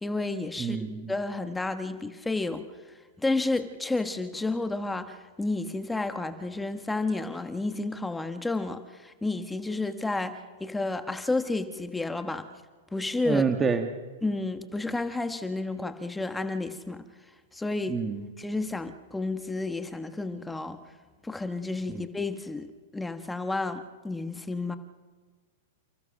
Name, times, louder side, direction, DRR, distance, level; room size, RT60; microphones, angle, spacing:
voice 1, 0.0-0.8 1.1-2.6 3.2-12.5 12.9-13.4 14.2-17.1 17.5-18.0 18.4-20.8 21.2-24.8, left 2 dB, 5° left, 9 dB, 1.2 m, -31 dB
voice 2, 0.6-1.1 13.2-13.9 17.9-18.3 21.9-22.0, right 5 dB, 15° right, 7 dB, 1.4 m, -27 dB
29.5 x 15.5 x 6.5 m, 1.4 s
hypercardioid pair, 135°, 0 cm